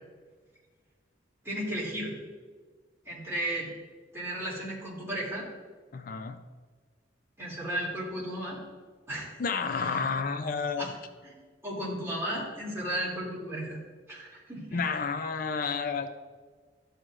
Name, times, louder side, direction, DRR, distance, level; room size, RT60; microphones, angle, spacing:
voice 1, 1.4-2.2 3.0-3.7 4.1-5.5 7.4-8.6 9.1-9.4 9.8-10.0 10.8-10.9 11.2-11.3 11.6-13.8 14.1-14.8, right 1 dB, 15° right, -7 dB, 2.7 m, -34 dB
voice 2, 5.9-6.4 9.4-10.9 14.7-16.1, left 5 dB, 50° left, 9 dB, 0.4 m, -30 dB
13.5 x 6.3 x 2.5 m, 1.5 s
head